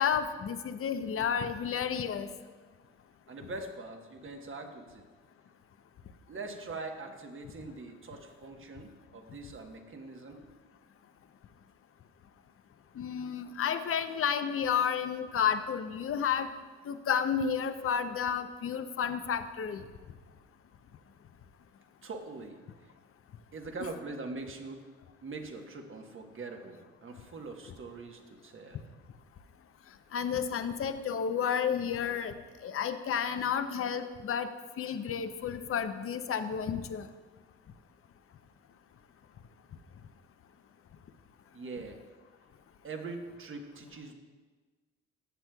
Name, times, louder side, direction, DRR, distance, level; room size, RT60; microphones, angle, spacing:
voice 1, 0.0-2.3 13.0-16.5 16.9-19.8 23.8-23.9 30.1-32.4 32.6-34.5 34.8-37.1, left 7 dB, 50° left, 10 dB, 0.7 m, -31 dB
voice 2, 3.3-5.0 6.3-10.4 22.0-22.6 23.5-24.8 25.2-28.8 41.5-42.0 42.8-44.1, right 3 dB, 45° right, 4 dB, 1.2 m, -42 dB
14.0 x 7.3 x 2.3 m, 1.4 s
supercardioid pair, 70°, 29 cm